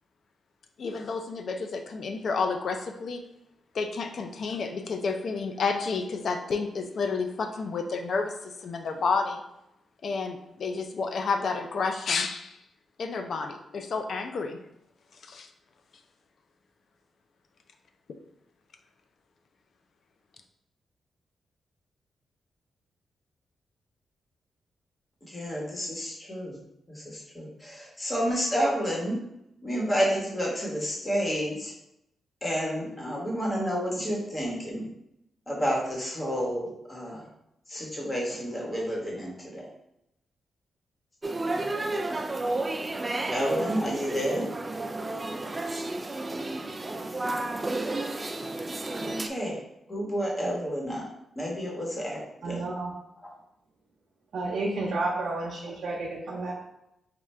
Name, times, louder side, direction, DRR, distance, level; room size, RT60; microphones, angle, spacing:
voice 1, 0.8-3.2 3.7-9.4 10.0-12.6 13.0-14.6 15.2-15.5 18.1-18.2, left 4 dB, 60° left, 6 dB, 0.4 m, -30 dB
voice 2, 25.3-26.6 26.9-29.2 29.6-31.7 32.4-34.9 35.5-37.2 37.7-39.7 43.3-44.5 48.9-49.6 49.9-51.1 51.3-52.2 52.4-52.6, equal, 20° left, -3 dB, 1.3 m, -30 dB
sound 1, 41.2-49.3, right 2 dB, 25° right, 0.3 m, -32 dB
voice 3, 52.4-52.9 54.3-56.5, right 2 dB, 70° right, -4 dB, 0.7 m, -31 dB
3.4 x 2.4 x 4.2 m, 0.83 s
cardioid pair, 105°, 0 cm